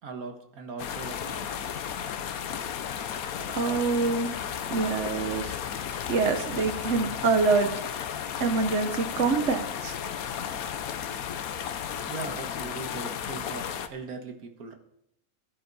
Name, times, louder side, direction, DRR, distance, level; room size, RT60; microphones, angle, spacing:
voice 1, 0.0-1.5 12.0-14.7, right 4 dB, 70° right, 5 dB, 1.9 m, -40 dB
sound 1, 0.8-13.9, left 8 dB, 70° left, 1.2 m, -34 dB
voice 2, 3.5-4.3 4.7-7.7 8.4-10.0, right 4 dB, 55° right, 7 dB, 1.1 m, -26 dB
16.5 x 10.0 x 4.1 m, 0.78 s
omnidirectional pair, 1.6 m